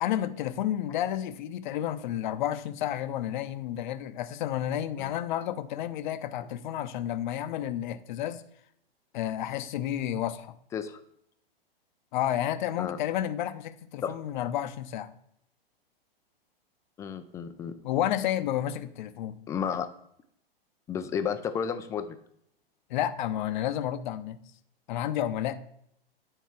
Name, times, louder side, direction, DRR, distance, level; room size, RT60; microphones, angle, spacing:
voice 1, 0.0-8.4 9.1-10.6 12.1-15.1 17.8-19.4 22.9-24.4 24.9-25.6, left 11 dB, 50° left, 0.7 m, -31 dB
voice 2, 17.0-17.7 19.5-19.9 20.9-22.2, left 7 dB, 10° left, 0.3 m, -32 dB
9.5 x 4.4 x 4.5 m
hypercardioid pair, 110°, 30 cm